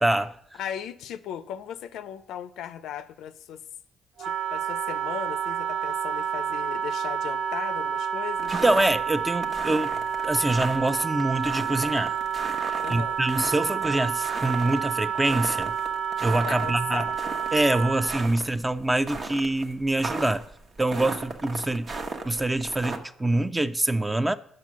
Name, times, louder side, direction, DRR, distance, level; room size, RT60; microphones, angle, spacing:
voice 1, 0.0-0.6 8.6-10.0 10.2-12.1 12.7-15.7 16.2-17.1 17.5-20.4 20.8-21.9 22.2-24.4, right 2 dB, 15° right, 0.4 m, -25 dB
voice 2, 0.6-3.6 4.2-8.6 12.8-13.2 16.4-17.2 21.0-21.1, left 9 dB, 85° left, 0.4 m, -37 dB
Wind instrument woodwind instrument, 4.2-18.3, right 7 dB, 75° right, 0.4 m, -29 dB
sound 1, 8.4-23.0, right 3 dB, 45° right, 0.9 m, -37 dB
7.6 x 5.9 x 6.2 m
cardioid pair, 90°, 0 cm